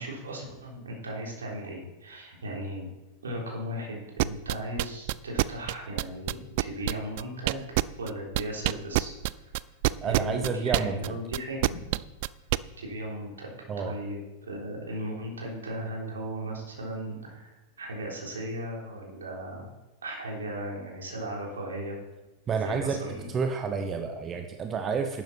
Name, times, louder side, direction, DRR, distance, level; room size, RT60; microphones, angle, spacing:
voice 1, 0.0-2.9 3.2-7.6 8.0-9.1 10.0-11.6 12.8-13.5 13.8-19.7 20.0-22.0 22.5-23.3, right 1 dB, 70° right, -1 dB, 3.5 m, -36 dB
sound 1, 4.2-8.1 8.4-12.6, right 21 dB, 50° right, 0.3 m, -25 dB
voice 2, 10.0-11.2 13.7-14.0 22.5-23.0 23.3-25.2, right 5 dB, 25° right, 6 dB, 0.9 m, -30 dB
11.5 x 9.3 x 4.3 m, 1.1 s
figure-of-eight pair, 90°, 0 cm